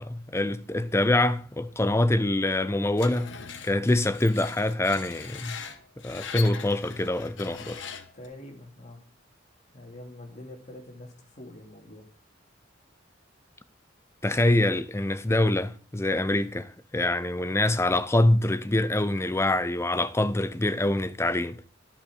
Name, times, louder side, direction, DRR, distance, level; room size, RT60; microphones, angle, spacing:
voice 1, 0.0-3.4 3.6-5.6 6.0-7.8 14.2-21.6, left 1 dB, 15° left, 0.5 m, -25 dB
Screech, 3.0-8.3, left 7 dB, 65° left, 1.1 m, -41 dB
voice 2, 8.1-9.0 9.7-12.0, left 1 dB, 40° left, 2.4 m, -45 dB
11.0 x 5.7 x 6.2 m
head